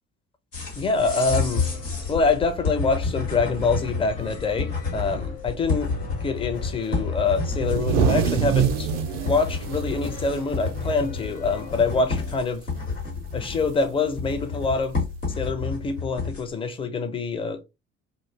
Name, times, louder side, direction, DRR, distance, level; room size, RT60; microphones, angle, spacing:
sound 1, 0.5-16.5, left 4 dB, 85° left, 1.0 m, -30 dB
voice 1, 0.8-1.7 2.1-8.9 9.2-12.6 13.3-15.0 15.4-17.6, left 4 dB, 15° left, 0.5 m, -25 dB
sound 2, 1.0-12.3, left 3 dB, 50° left, 0.9 m, -41 dB
sound 3, 7.5-11.2 11.6-11.7 12.1-12.6 13.7-13.8 14.8-14.9, right 8 dB, 55° right, 0.5 m, -25 dB
2.4 x 2.0 x 3.3 m
figure-of-eight pair, 55°, 37 cm